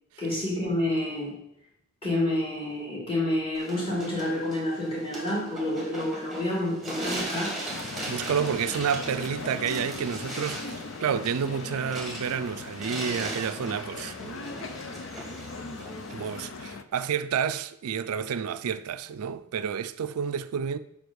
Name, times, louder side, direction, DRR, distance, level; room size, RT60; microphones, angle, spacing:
voice 1, 0.2-1.4 2.0-7.6, left 1 dB, 25° left, 2.8 m, -29 dB
sound 1, 3.5-16.5, right 1 dB, ahead, 1.4 m, -38 dB
sound 2, 7.7-16.8, left 3 dB, 60° left, 0.5 m, -39 dB
voice 2, 7.8-14.7 16.1-20.8, right 7 dB, 85° right, 0.4 m, -30 dB
5.1 x 5.1 x 6.2 m
head